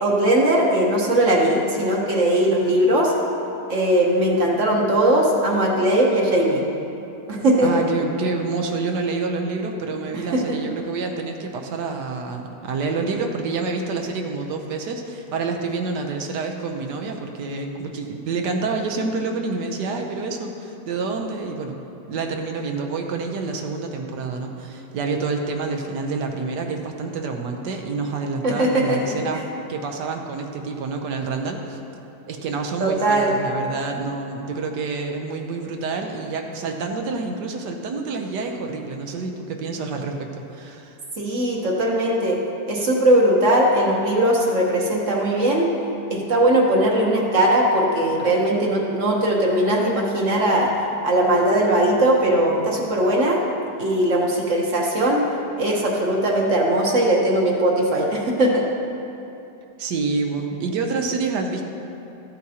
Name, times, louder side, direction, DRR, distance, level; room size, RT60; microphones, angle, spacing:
voice 1, 0.0-3.1 3.7-6.6 7.3-7.7 10.1-10.7 28.4-29.2 32.8-33.3 41.2-42.4 42.7-45.7 46.1-50.7 51.0-53.4 53.8-55.2 55.6-58.6, right 1 dB, 50° right, -2 dB, 1.3 m, -19 dB
voice 2, 7.6-21.8 22.1-31.8 32.3-41.0 59.8-61.6, right 4 dB, 75° right, 3 dB, 1.3 m, -28 dB
13.5 x 8.4 x 2.8 m, 2.8 s
omnidirectional pair, 1.8 m